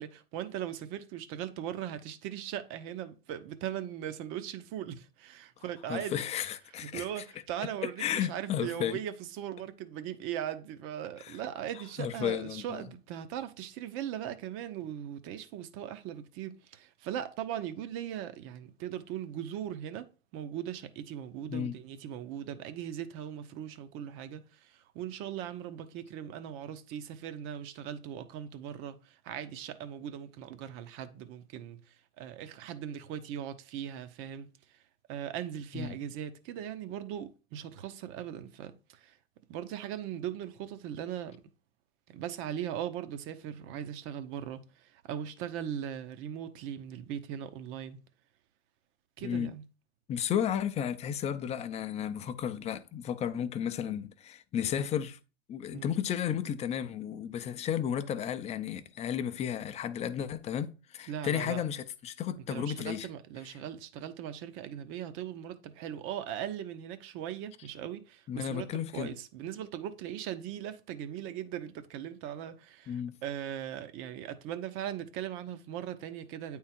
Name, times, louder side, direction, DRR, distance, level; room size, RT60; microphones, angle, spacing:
voice 1, 0.0-6.3 6.8-20.1 20.3-31.8 32.2-34.5 35.1-39.2 39.5-41.4 42.1-48.0 49.2-49.6 55.7-55.9 61.1-61.6 62.5-76.6, right 10 dB, 40° right, 0.9 m, -39 dB
voice 2, 5.9-7.2 7.8-9.0 11.2-11.4 12.0-12.8 21.5-21.8 35.7-36.0 49.2-49.5 50.1-55.2 55.5-63.1 68.3-69.2 72.9-73.1, left 9 dB, 20° left, 0.6 m, -33 dB
8.8 x 3.7 x 4.4 m
hypercardioid pair, 120°, 32 cm